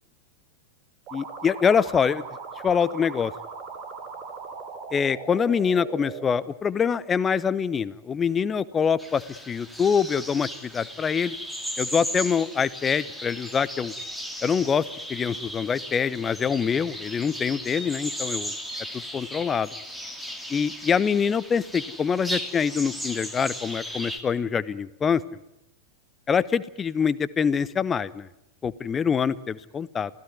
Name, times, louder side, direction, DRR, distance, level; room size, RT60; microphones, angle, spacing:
voice 1, 1.1-2.2 2.6-3.3 4.9-11.3 11.8-13.9 14.4-14.8 15.1-18.5 19.1-19.7 20.5-25.4 26.3-28.3 28.6-30.1, left 6 dB, 20° left, 19 dB, 0.9 m, -25 dB
sound 1, 1.1-6.3, right 5 dB, 35° right, 4.2 m, -39 dB
sound 2, 9.0-24.2, equal, ahead, 2.7 m, -36 dB
28.5 x 16.5 x 9.6 m, 0.86 s
figure-of-eight pair, 90°, 0 cm